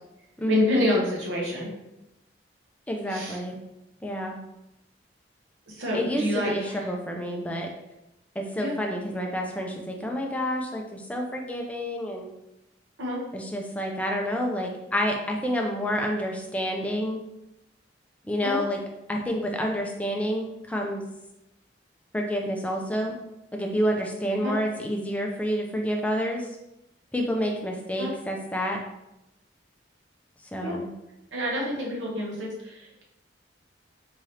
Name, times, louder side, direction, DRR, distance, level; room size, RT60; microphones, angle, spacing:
voice 1, 0.5-1.7 3.1-3.4 5.7-6.9 8.6-8.8 13.0-13.2 18.4-18.6 24.4-24.6 28.0-28.1 30.6-30.8 31.3-33.0, left 1 dB, 75° right, -3 dB, 1.0 m, -28 dB
voice 2, 2.9-3.6 4.0-4.4 5.9-7.7 8.4-12.3 13.3-17.2 18.3-18.8 19.1-21.0 22.1-23.2 23.5-26.5 27.1-28.8 30.5-30.9, equal, 5° left, 1 dB, 0.4 m, -29 dB
3.6 x 2.8 x 3.2 m, 0.91 s
head